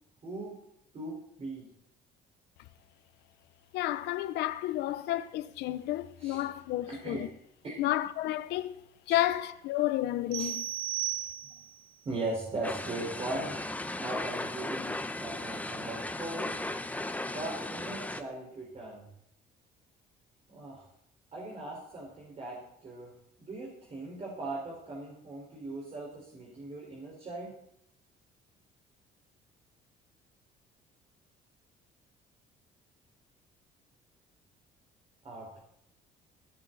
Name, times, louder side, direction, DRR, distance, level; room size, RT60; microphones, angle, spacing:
voice 1, 0.2-0.6 0.9-1.7 6.2-6.4 6.8-7.3 7.6-7.9 9.1-9.2 10.4-10.5 11.5-11.6 12.0-13.6 14.0-16.5 17.3-19.1 20.5-20.9 21.3-23.1 23.5-27.5 35.2-35.6, right 2 dB, 35° right, 5.1 m, -39 dB
voice 2, 3.7-7.3 7.8-8.8 9.1-10.7, left 14 dB, 85° left, 1.0 m, -31 dB
sound 1, 10.3-11.8, right 13 dB, 85° right, 1.5 m, -35 dB
sound 2, 12.6-18.2, left 2 dB, 10° left, 1.2 m, -36 dB
19.5 x 10.5 x 4.2 m
cardioid pair, 110°, 17 cm